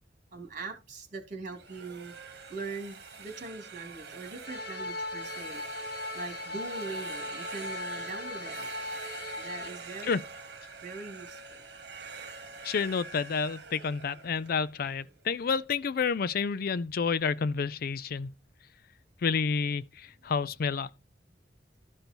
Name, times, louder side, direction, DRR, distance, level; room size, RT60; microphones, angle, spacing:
voice 1, 0.3-2.1 2.5-5.6 6.1-8.7 9.3-10.2 10.8-11.4, right 3 dB, 45° right, 2.7 m, -41 dB
sound 1, 1.5-15.3, right 4 dB, 65° right, 1.6 m, -45 dB
sound 2, 4.4-9.7, left 2 dB, 80° left, 1.3 m, -38 dB
voice 2, 12.6-18.3 19.2-20.9, left 5 dB, 55° left, 0.4 m, -29 dB
12.5 x 5.3 x 4.5 m
head